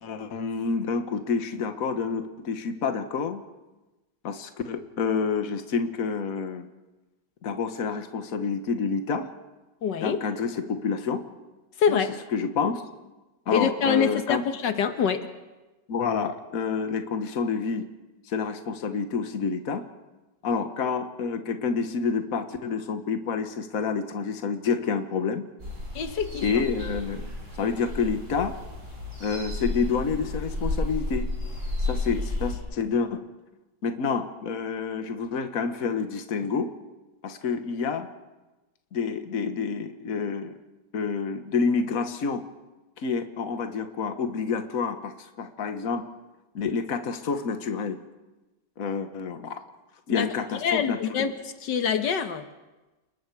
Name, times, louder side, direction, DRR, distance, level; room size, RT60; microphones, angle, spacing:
voice 1, 0.0-3.4 4.2-6.7 7.4-9.3 10.0-11.2 11.9-12.0 12.3-12.8 13.5-14.4 15.9-17.9 18.3-19.8 20.4-25.4 26.4-27.3 27.6-28.6 29.2-31.3 31.8-33.2 33.8-36.7 37.2-38.1 38.9-40.5 40.9-42.4 43.0-46.1 46.5-48.0 48.8-49.6 50.1-51.3, left 5 dB, 55° left, 7 dB, 1.7 m, -28 dB
voice 2, 9.8-10.2 11.8-12.2 13.5-15.3 26.0-26.6 50.1-52.4, left 7 dB, 80° left, 8 dB, 1.8 m, -26 dB
sound 1, 25.6-32.6, left 2 dB, 45° right, 8.2 m, -32 dB
29.5 x 20.5 x 4.8 m, 1.1 s
omnidirectional pair, 1.9 m